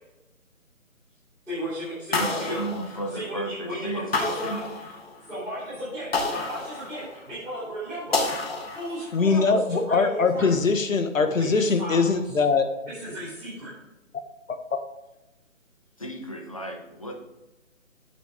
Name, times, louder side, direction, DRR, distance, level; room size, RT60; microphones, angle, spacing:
voice 1, 1.5-2.7 3.1-4.6 5.3-10.5 11.2-12.1 12.8-13.7, equal, 5° left, -19 dB, 3.0 m, -34 dB
sound 1, 2.1-3.5 4.1-5.3 6.1-7.4 8.1-9.3, left 3 dB, 45° left, 1.2 m, -30 dB
voice 2, 2.1-4.1 4.4-4.6 16.0-17.1, right 1 dB, 25° left, 3 dB, 0.7 m, -33 dB
voice 3, 9.1-12.7 14.7-14.8, left 4 dB, 70° left, 8 dB, 1.2 m, -22 dB
8.6 x 6.4 x 3.5 m, 0.99 s
hypercardioid pair, 170°, 41 cm